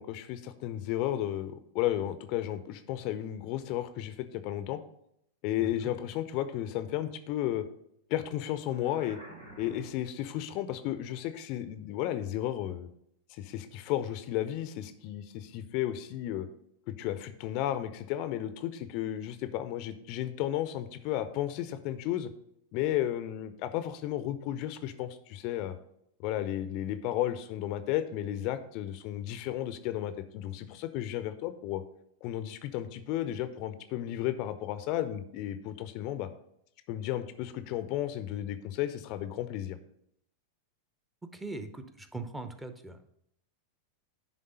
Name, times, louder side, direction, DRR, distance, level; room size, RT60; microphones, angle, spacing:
voice 1, 0.0-4.8 5.4-7.6 8.1-9.2 9.6-12.9 13.3-16.5 16.9-22.3 22.7-25.7 26.2-31.8 32.2-36.3 36.9-39.8, left 12 dB, 45° left, 11 dB, 0.5 m, -33 dB
sound 1, 8.6-10.2, right 1 dB, 75° right, 3.2 m, -50 dB
voice 2, 41.2-43.1, right 2 dB, 10° right, 9 dB, 0.7 m, -41 dB
10.0 x 3.6 x 5.4 m, 0.73 s
figure-of-eight pair, 90°, 0 cm